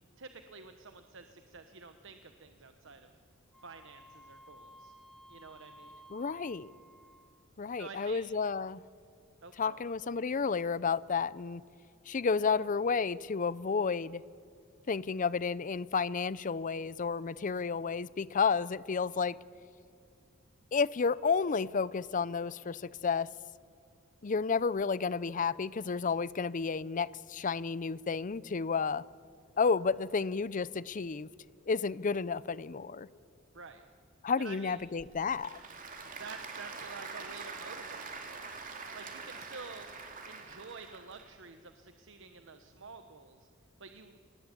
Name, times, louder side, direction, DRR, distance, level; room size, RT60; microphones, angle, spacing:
voice 1, 0.2-3.1 3.6-4.9 5.3-5.9 7.8-8.3 9.4-9.9 33.5-33.8 34.4-34.8 36.2-38.5 38.9-39.9 40.2-43.5 43.8-44.2, right 4 dB, 60° right, 1.1 m, -49 dB
Wind instrument woodwind instrument, 3.5-7.4, equal, ahead, 1.9 m, -56 dB
voice 2, 6.1-6.7 7.6-8.8 9.6-11.6 12.1-14.2 14.9-19.4 20.7-23.3 24.2-29.0 29.6-31.3 31.7-33.1 34.2-35.5, left 5 dB, 40° left, 0.5 m, -31 dB
Applause / Crowd, 34.8-41.3, right 4 dB, 40° right, 2.8 m, -44 dB
27.5 x 20.0 x 8.5 m
head